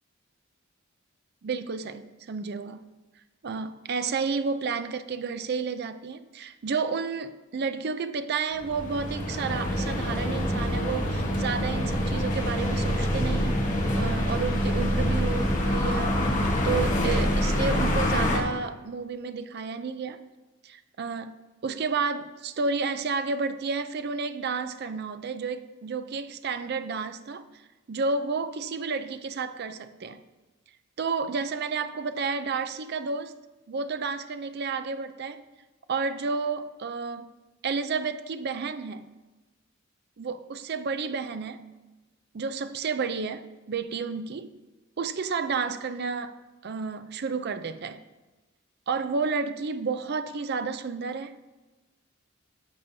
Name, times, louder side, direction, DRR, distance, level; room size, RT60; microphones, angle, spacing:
voice 1, 1.4-2.8 3.4-13.6 13.9-16.2 16.6-20.2 20.6-21.4 21.6-27.4 27.9-30.2 31.0-33.3 33.7-35.4 35.9-37.3 37.6-39.1 40.2-41.8 42.3-44.5 45.0-46.3 46.6-48.0 48.9-51.4, right 4 dB, 50° right, 0.4 m, -31 dB
sound 1, 8.6-18.4, equal, 35° left, 1.2 m, -26 dB
13.0 x 7.2 x 2.7 m
head